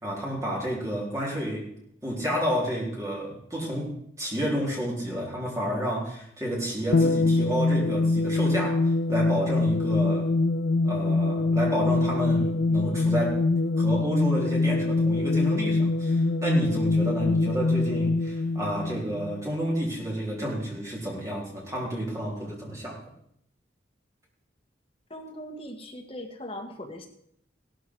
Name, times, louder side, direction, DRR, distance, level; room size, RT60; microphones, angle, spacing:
voice 1, 0.0-1.7 2.0-10.3 10.8-13.4 13.8-23.0, equal, 15° right, -3 dB, 4.0 m, -30 dB
sound 1, 6.9-19.8, left 3 dB, 55° left, 0.5 m, -24 dB
voice 2, 25.1-27.1, left 1 dB, 30° left, 2 dB, 1.9 m, -39 dB
16.5 x 13.0 x 4.8 m, 0.71 s
head